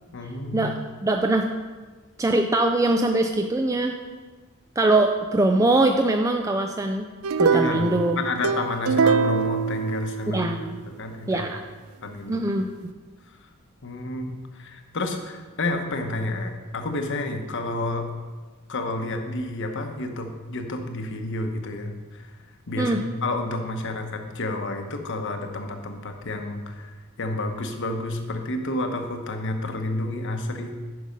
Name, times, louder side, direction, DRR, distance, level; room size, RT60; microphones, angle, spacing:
voice 1, 0.1-0.7 7.5-10.6 10.9-11.5 12.0-12.5 13.8-18.1 18.7-22.3 22.7-30.7, left 2 dB, 60° left, 5 dB, 1.0 m, -30 dB
voice 2, 1.0-1.5 2.2-4.0 4.8-7.0 7.4-8.2 10.3-10.8 11.3-11.6 12.3-12.7 22.8-23.0, right 2 dB, 15° right, 4 dB, 0.4 m, -22 dB
sound 1, 7.2-10.6, right 5 dB, 80° right, 0.4 m, -23 dB
9.4 x 6.3 x 5.2 m, 1.4 s
head